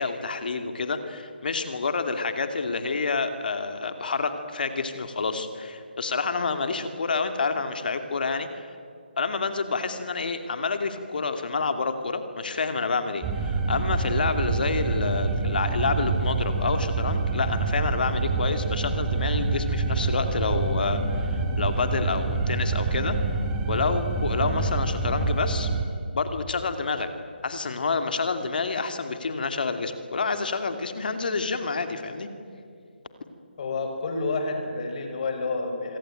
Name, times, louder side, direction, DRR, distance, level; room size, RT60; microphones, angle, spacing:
voice 1, 0.0-8.7 9.2-23.2 23.7-25.7 26.1-27.1 27.4-32.3, left 4 dB, 60° left, 8 dB, 2.6 m, -28 dB
sound 1, 13.2-25.8, right 3 dB, 15° right, 3.5 m, -26 dB
voice 2, 33.6-36.0, left 3 dB, 45° left, 5 dB, 5.8 m, -29 dB
26.5 x 24.5 x 9.1 m, 2.4 s
figure-of-eight pair, 155°, 6 cm